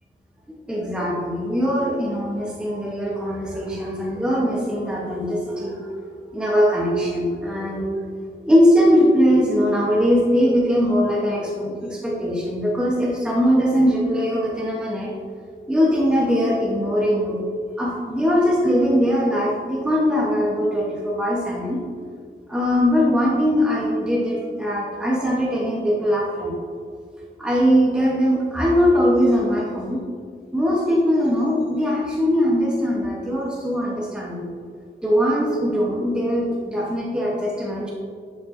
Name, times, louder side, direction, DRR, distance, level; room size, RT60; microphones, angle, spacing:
voice 1, 0.7-6.0 6.3-8.0 8.4-15.1 15.7-17.4 17.8-21.8 22.5-26.6 27.4-30.0 30.5-34.5 35.0-37.9, equal, 5° right, -4 dB, 0.9 m, -21 dB
11.0 x 5.3 x 2.6 m, 2.1 s
wide cardioid pair, 130°, 21 cm